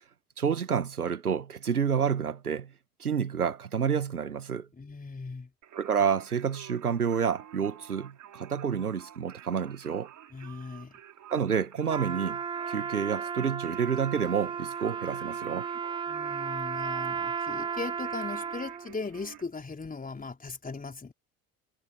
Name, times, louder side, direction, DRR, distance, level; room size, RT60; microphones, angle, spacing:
voice 1, 0.4-2.7 3.0-4.7 5.7-10.1 11.3-12.4 12.7-15.7, right 7 dB, 85° right, 1.5 m, -29 dB
voice 2, 4.7-5.5 10.3-11.0 16.1-21.1, left 4 dB, 20° left, 4.5 m, -38 dB
Singing, 5.6-19.4, right 10 dB, 40° right, 3.8 m, -51 dB
Trumpet, 11.9-18.9, right 6 dB, 10° right, 0.4 m, -34 dB
figure-of-eight pair, 60°, 44 cm